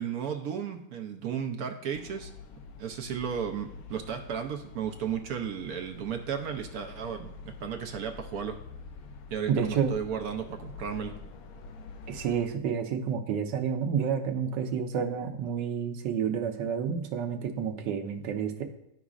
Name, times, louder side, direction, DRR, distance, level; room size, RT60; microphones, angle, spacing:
voice 1, 0.0-2.3 2.8-8.6 9.3-11.1, right 7 dB, 70° right, 5 dB, 1.0 m, -34 dB
sound 1, 1.9-12.5, left 4 dB, 65° left, 1.0 m, -47 dB
voice 2, 9.5-9.9 12.1-18.7, right 7 dB, 90° right, 6 dB, 1.4 m, -29 dB
12.0 x 5.0 x 2.4 m, 0.81 s
omnidirectional pair, 1.9 m